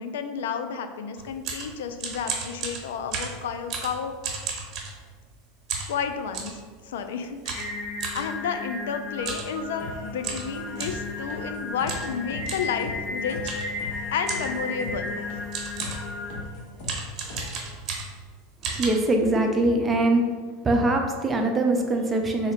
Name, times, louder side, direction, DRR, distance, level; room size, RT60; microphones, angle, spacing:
voice 1, 0.0-4.1 5.9-7.7 8.1-13.7 14.1-15.2, left 6 dB, 80° left, 8 dB, 0.3 m, -31 dB
sound 1, 1.2-5.3 5.7-6.6 7.5-8.3 9.2-9.5 9.8-9.9 10.2-11.1 11.9-12.1 12.5-12.7 13.4-13.8 14.3-14.6 15.2-15.3 15.5-16.1 16.8-18.3 18.6-18.9, right 5 dB, 45° right, 0.9 m, -33 dB
Singing, 7.5-16.4, left 3 dB, 30° left, 1.0 m, -34 dB
sound 2, 9.8-17.8, left 2 dB, 65° left, 1.0 m, -40 dB
voice 2, 18.6-20.2 20.6-22.5, right 2 dB, 20° right, 3 dB, 0.5 m, -22 dB
3.7 x 2.1 x 4.3 m, 1.5 s
hypercardioid pair, 105°, 0 cm